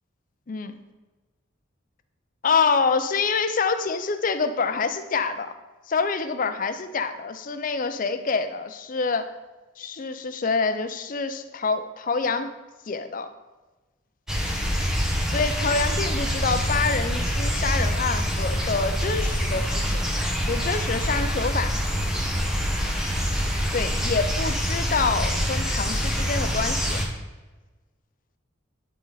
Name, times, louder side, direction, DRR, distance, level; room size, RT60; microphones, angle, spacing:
voice 1, 0.5-0.8 2.4-5.5 5.9-9.3 9.8-12.5 12.9-13.3 15.3-20.1 20.5-21.8 23.7-27.0, left 4 dB, 45° left, 9 dB, 0.5 m, -26 dB
sound 1, 14.3-27.1, equal, 5° right, 1.0 m, -25 dB
11.5 x 4.0 x 3.9 m, 1.2 s
head